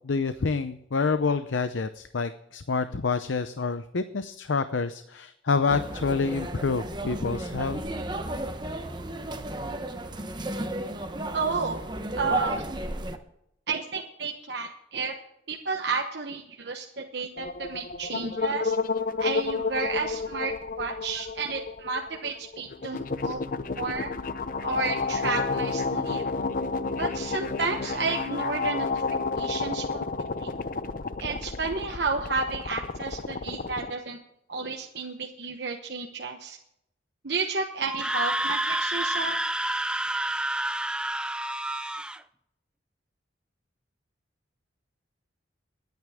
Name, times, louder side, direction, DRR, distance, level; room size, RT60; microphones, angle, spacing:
voice 1, 0.0-7.8, left 4 dB, 85° left, 11 dB, 0.6 m, -27 dB
sound 1, 5.7-13.2, right 1 dB, 25° right, 1.0 m, -34 dB
voice 2, 11.3-11.8 12.2-12.6 13.7-15.1 15.5-18.7 19.2-23.4 23.8-24.1 24.6-26.2 27.0-28.9 29.3-30.1 30.4-30.5 31.2-34.2 34.5-36.6 37.2-39.4 40.1-40.2, right 4 dB, 60° right, 2 dB, 1.0 m, -31 dB
sound 2, 17.4-33.9, left 4 dB, 45° left, 0.6 m, -31 dB
Screaming, 37.8-42.2, right 1 dB, 5° right, 0.4 m, -29 dB
22.5 x 9.4 x 3.6 m, 0.79 s
head